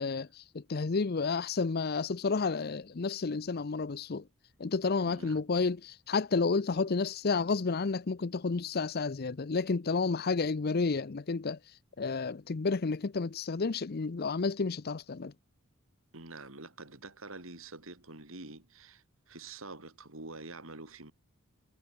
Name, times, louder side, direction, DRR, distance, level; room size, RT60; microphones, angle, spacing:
voice 1, 0.0-4.2 4.6-15.3, left 4 dB, 50° left, 0.6 m, -31 dB
voice 2, 5.0-5.4 16.1-21.1, right 3 dB, 70° right, 3.5 m, -47 dB
head